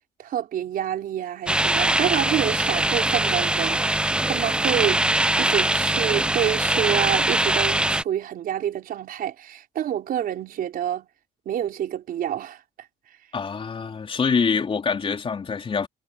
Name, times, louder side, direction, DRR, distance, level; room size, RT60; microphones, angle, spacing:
voice 1, 0.2-11.1 11.4-12.6, right 10 dB, 60° right, 4.9 m, -28 dB
sound 1, 1.5-8.0, right 1 dB, 5° right, 0.4 m, -22 dB
voice 2, 13.3-15.9, left 5 dB, 30° left, 4.3 m, -25 dB
cardioid pair, 110°, 17 cm